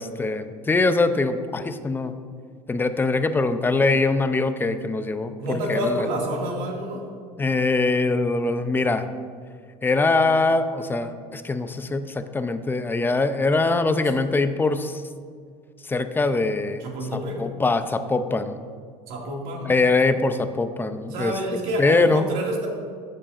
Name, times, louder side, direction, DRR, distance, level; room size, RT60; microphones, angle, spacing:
voice 1, 0.0-2.1 2.7-6.1 7.4-9.0 9.8-15.0 15.9-16.8 17.4-18.6 19.7-21.3 21.8-22.2, left 3 dB, 15° left, 10 dB, 0.5 m, -22 dB
voice 2, 5.4-7.0 16.8-17.4 19.1-19.7 21.1-22.7, right 1 dB, 70° right, -1 dB, 2.1 m, -28 dB
13.5 x 7.6 x 2.5 m, 2.1 s
supercardioid pair, 120°, 15 cm